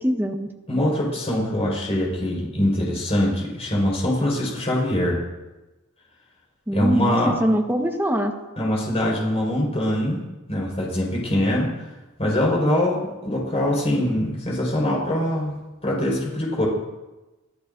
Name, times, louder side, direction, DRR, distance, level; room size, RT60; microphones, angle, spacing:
voice 1, 0.0-0.5 6.7-8.3, equal, 10° right, 2 dB, 1.4 m, -23 dB
voice 2, 0.7-5.2 6.7-7.3 8.6-10.2 10.5-11.9 12.2-15.5 15.8-16.7, left 1 dB, 30° left, -3 dB, 5.0 m, -23 dB
25.5 x 13.5 x 2.7 m, 1.1 s
head